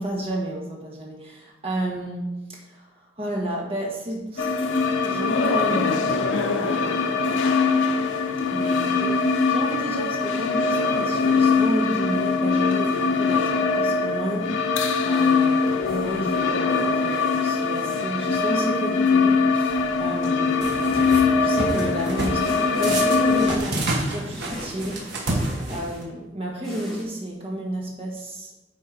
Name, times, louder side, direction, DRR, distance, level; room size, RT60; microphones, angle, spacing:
voice 1, 0.0-2.9 3.2-4.7 5.0-6.1 6.6-7.9 8.5-14.5 15.0-28.7, right 1 dB, 30° right, -2 dB, 1.8 m, -32 dB
sound 1, 4.4-23.6, left 4 dB, 80° left, 0.7 m, -22 dB
sound 2, 15.1-16.5 19.7-20.1 22.4-26.1 26.6-27.0, equal, ahead, 2.1 m, -40 dB
sound 3, 20.6-21.2 21.6-22.4 22.8-26.0, right 1 dB, 60° right, 1.5 m, -28 dB
8.7 x 4.2 x 5.1 m, 1.0 s
head